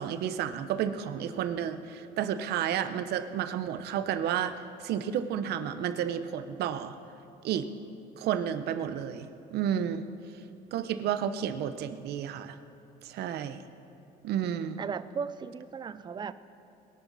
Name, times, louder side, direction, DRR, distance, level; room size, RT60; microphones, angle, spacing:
voice 1, 0.0-7.0 7.4-7.7 8.2-10.1 10.7-12.6 13.0-13.6 14.2-14.8, right 9 dB, 75° right, 10 dB, 0.8 m, -31 dB
voice 2, 14.8-16.3, right 6 dB, 25° right, 14 dB, 0.5 m, -36 dB
21.5 x 11.0 x 4.1 m, 2.7 s
cardioid pair, 110°, 17 cm